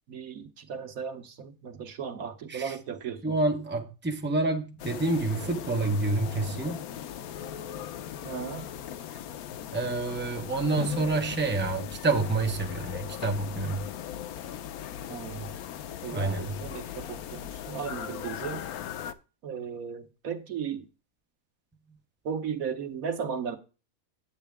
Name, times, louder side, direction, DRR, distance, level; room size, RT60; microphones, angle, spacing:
voice 1, 0.1-3.3 8.2-8.7 15.1-15.5 16.0-18.6 19.4-20.9 22.2-23.6, right 7 dB, 75° right, 1.4 m, -36 dB
voice 2, 3.2-6.8 9.7-13.8 16.1-16.5, right 3 dB, 10° right, 0.9 m, -28 dB
sound 1, 4.8-19.1, left 10 dB, 85° left, 1.2 m, -38 dB
9.9 x 8.1 x 3.4 m
omnidirectional pair, 1.5 m